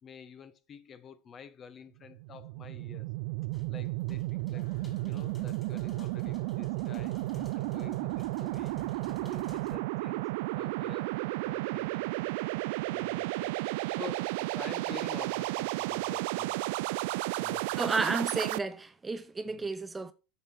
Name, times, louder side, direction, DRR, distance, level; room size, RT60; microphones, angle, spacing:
voice 1, 0.0-3.1 3.7-4.7 5.0-8.8 9.1-10.2 10.5-12.2 12.5-16.8 17.4-17.9 19.5-19.7, left 7 dB, 35° left, 1.2 m, -49 dB
sound 1, 2.0-18.6, right 21 dB, 70° right, 0.3 m, -33 dB
sound 2, 3.5-9.8, left 1 dB, 20° left, 3.7 m, -50 dB
sound 3, 4.5-18.7, left 1 dB, 90° left, 3.1 m, -63 dB
voice 2, 17.8-20.1, right 3 dB, 15° right, 0.7 m, -32 dB
8.9 x 6.6 x 4.4 m
hypercardioid pair, 90°, 0 cm